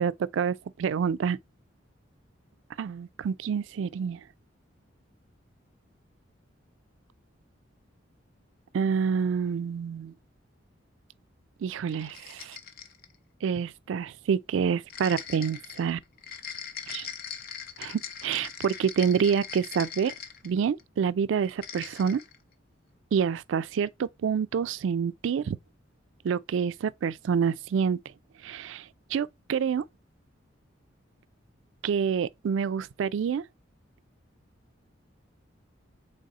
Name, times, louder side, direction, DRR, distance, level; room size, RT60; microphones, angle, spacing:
voice 1, 0.0-1.4 2.8-4.2 8.7-10.1 11.6-12.6 13.4-16.0 16.9-17.1 17.8-20.1 20.4-22.2 23.1-25.6 26.2-28.0 28.4-29.8 31.8-33.4, right 7 dB, 75° right, 0.3 m, -27 dB
sound 1, 11.9-13.2 14.9-20.8 21.4-22.4, left 8 dB, 50° left, 0.6 m, -41 dB
4.1 x 3.4 x 3.5 m
head